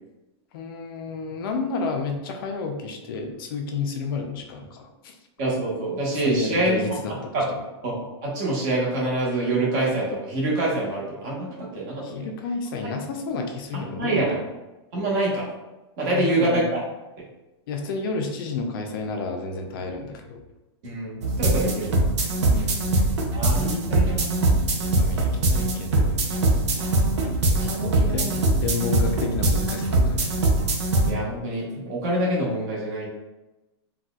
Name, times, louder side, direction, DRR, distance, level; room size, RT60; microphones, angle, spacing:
voice 1, 0.5-5.1 6.2-7.4 12.0-14.4 16.1-16.7 17.7-20.4 22.5-22.9 25.0-26.1 27.6-30.4, left 4 dB, 50° left, 3 dB, 0.4 m, -31 dB
voice 2, 5.4-6.8 7.3-7.4 7.8-12.3 13.7-14.4 14.9-15.5 16.0-16.8 20.8-22.0 23.3-24.6 27.6-28.3 31.0-33.1, right 2 dB, 40° right, -4 dB, 1.1 m, -26 dB
sound 1, 21.2-31.1, right 2 dB, 85° right, 0.7 m, -22 dB
4.0 x 2.3 x 2.3 m, 1.0 s
supercardioid pair, 165°, 14 cm